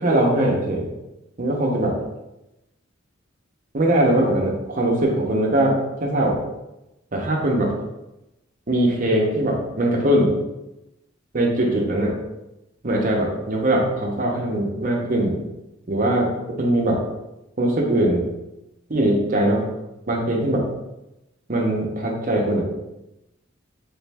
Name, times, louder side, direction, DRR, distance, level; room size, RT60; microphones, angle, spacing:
voice 1, 0.0-0.9 1.4-2.0 3.7-6.4 7.1-7.7 8.7-10.3 11.3-12.1 12.8-15.4 15.9-16.3 16.6-17.0 17.6-18.3 18.9-19.6 20.1-20.6 21.5-22.7, right 1 dB, 45° right, -1 dB, 0.8 m, -21 dB
3.3 x 3.1 x 3.4 m, 0.95 s
head